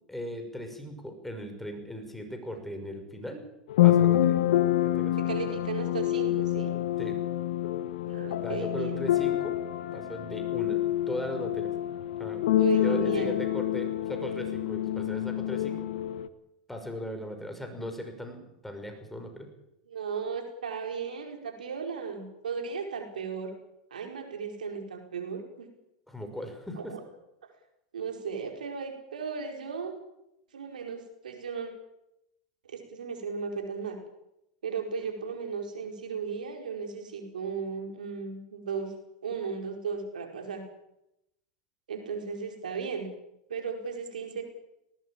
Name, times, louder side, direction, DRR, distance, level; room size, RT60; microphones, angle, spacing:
voice 1, 0.1-3.4 3.8-4.4 4.8-5.3 7.0-7.2 8.4-9.6 9.9-10.8 11.1-11.7 12.2-12.4 12.8-15.9 16.7-19.5 26.1-26.9, equal, 5° left, 5 dB, 5.9 m, -38 dB
sound 1, 3.7-16.3, left 13 dB, 70° left, 1.4 m, -27 dB
voice 2, 5.2-6.7 8.1-9.0 12.6-13.3 19.9-23.5 23.9-25.7 26.8-27.0 27.9-29.9 30.5-31.7 32.7-34.0 34.6-38.9 39.2-40.6 41.9-43.1 43.5-44.4, right 5 dB, 85° right, 3 dB, 5.0 m, -35 dB
19.5 x 19.0 x 8.9 m, 0.85 s
hypercardioid pair, 100°, 4 cm